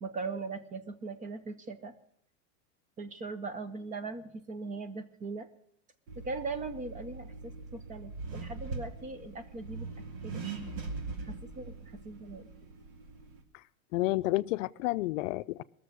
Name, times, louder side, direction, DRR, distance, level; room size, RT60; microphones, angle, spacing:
voice 1, 0.0-1.9 3.0-5.5 6.2-9.9 10.2-10.7 11.2-12.5, right 3 dB, 20° right, 0.6 m, -40 dB
Accelerating revving vroom, 6.1-13.4, right 4 dB, 70° right, 2.4 m, -42 dB
voice 2, 13.9-15.6, left 19 dB, 70° left, 0.5 m, -30 dB
21.0 x 7.0 x 6.3 m
supercardioid pair, 160°, 40 cm